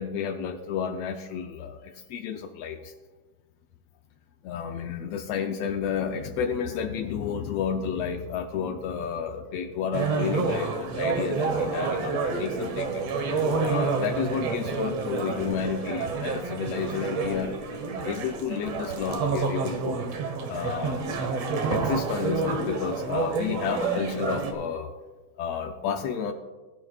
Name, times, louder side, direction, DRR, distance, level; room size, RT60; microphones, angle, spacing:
voice 1, 0.0-2.9 4.4-13.1 13.7-17.6 18.0-20.0 20.5-21.0 21.7-24.9 25.4-26.3, left 7 dB, 85° left, 5 dB, 1.4 m, -31 dB
sound 1, 9.9-24.5, right 4 dB, 60° right, 2.0 m, -28 dB
20.0 x 11.0 x 2.4 m, 1.3 s
omnidirectional pair, 3.7 m